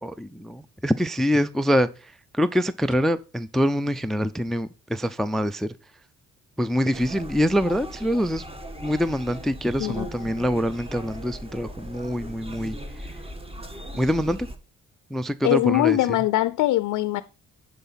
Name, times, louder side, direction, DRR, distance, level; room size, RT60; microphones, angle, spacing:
voice 1, 0.0-5.8 6.6-8.4 8.8-13.1 13.9-14.5 15.1-16.2, equal, ahead, 0.4 m, -25 dB
sound 1, 6.9-14.6, equal, 20° right, 1.4 m, -38 dB
voice 2, 15.4-17.2, left 14 dB, 80° left, 0.5 m, -22 dB
11.0 x 4.2 x 5.6 m
cardioid pair, 90°, 30 cm